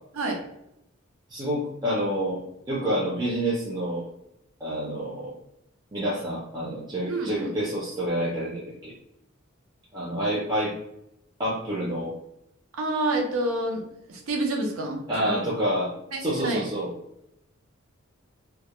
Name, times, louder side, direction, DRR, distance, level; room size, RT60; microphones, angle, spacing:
voice 1, 1.3-2.4 2.7-4.1 4.6-5.3 5.9-8.9 9.9-10.7 11.4-12.1 15.1-15.9 16.2-16.9, equal, 20° right, -7 dB, 0.4 m, -28 dB
voice 2, 7.1-7.5 12.8-15.4 16.1-16.7, right 2 dB, 80° right, 1 dB, 0.6 m, -28 dB
2.2 x 2.0 x 2.9 m, 0.83 s
head